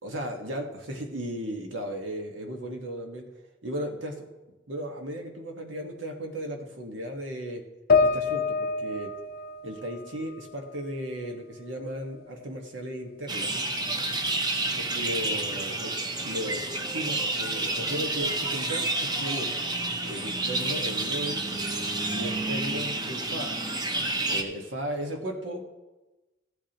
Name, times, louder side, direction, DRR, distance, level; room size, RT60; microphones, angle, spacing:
voice 1, 0.0-3.2 3.6-4.3 4.7-7.6 8.0-9.1 9.6-13.6 14.7-15.9 16.2-21.5 22.1-23.5 24.3-25.7, equal, 85° right, 2 dB, 1.6 m, -35 dB
sound 1, 7.9-11.3 11.7-12.7, left 4 dB, 55° left, 0.6 m, -28 dB
sound 2, 13.3-24.4, right 2 dB, 20° right, 0.8 m, -29 dB
15.0 x 8.4 x 3.0 m, 1.1 s
head